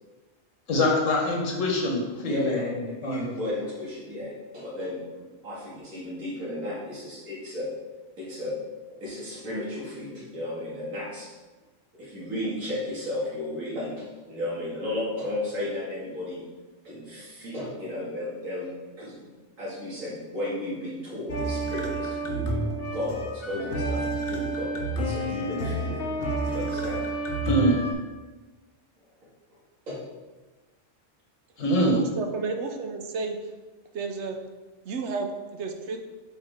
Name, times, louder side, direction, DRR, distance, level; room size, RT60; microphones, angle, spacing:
voice 1, 0.7-3.2 27.4-27.7 31.6-32.0, left 1 dB, 75° left, 0 dB, 1.6 m, -24 dB
voice 2, 2.2-5.0 5.4-7.7 8.2-8.5 8.9-11.3 11.9-16.4 16.8-19.3 19.6-22.6 22.9-26.0 26.4-27.1 29.9-30.0, left 1 dB, 85° right, -7 dB, 2.7 m, -34 dB
sound 1, 21.3-27.9, right 2 dB, 50° left, 1.0 m, -29 dB
voice 3, 31.8-33.4 33.9-34.4 34.8-36.0, right 4 dB, 65° right, 5 dB, 1.0 m, -32 dB
7.9 x 4.6 x 3.6 m, 1.3 s
omnidirectional pair, 1.4 m